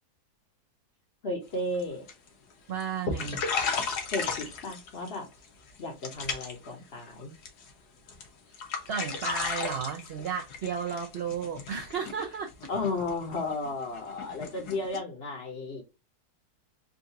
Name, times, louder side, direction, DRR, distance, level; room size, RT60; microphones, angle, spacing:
voice 1, 1.2-2.0 4.0-5.3 5.8-7.3 12.7-15.8, left 2 dB, 50° left, 1.0 m, -34 dB
sound 1, 1.5-1.8 2.1-2.5 2.8-2.9 3.1-5.2 5.4-5.8 6.0-6.7 7.0-7.7 8.1-8.3 8.5-15.0, left 5 dB, 90° left, 1.4 m, -35 dB
voice 2, 2.7-3.4 8.5-8.6 8.9-12.5, right 6 dB, 65° right, 0.6 m, -33 dB
3.7 x 2.4 x 2.7 m
omnidirectional pair, 1.6 m